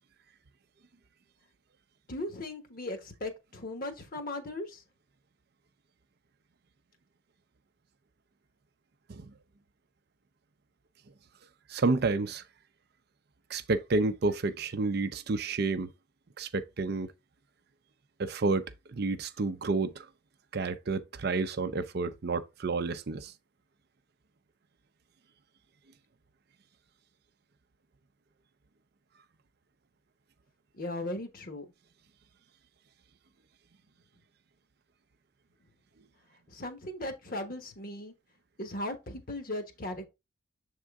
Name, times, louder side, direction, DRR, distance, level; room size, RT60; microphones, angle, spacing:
voice 1, 2.1-4.8 30.7-31.7 36.5-38.1 38.6-40.1, left 1 dB, 45° left, 1.1 m, -37 dB
voice 2, 11.7-12.4 13.5-15.9 16.4-17.1 18.2-20.1 20.5-23.3, right 3 dB, 50° right, 0.5 m, -30 dB
7.4 x 3.6 x 3.5 m
head